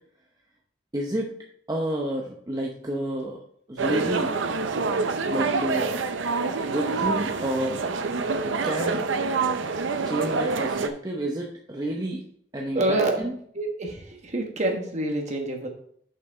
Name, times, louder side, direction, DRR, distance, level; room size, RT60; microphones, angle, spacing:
voice 1, 0.9-1.3 1.7-3.4 3.7-4.3 5.2-6.0 6.6-7.8 8.4-9.0 10.0-12.2 12.5-13.3, right 1 dB, 20° right, -1 dB, 0.8 m, -30 dB
sound 1, 3.8-10.9, right 4 dB, 75° right, 0.6 m, -26 dB
voice 2, 12.7-13.2 13.5-15.7, right 2 dB, 35° right, 3 dB, 1.2 m, -26 dB
6.6 x 5.9 x 4.3 m, 0.63 s
head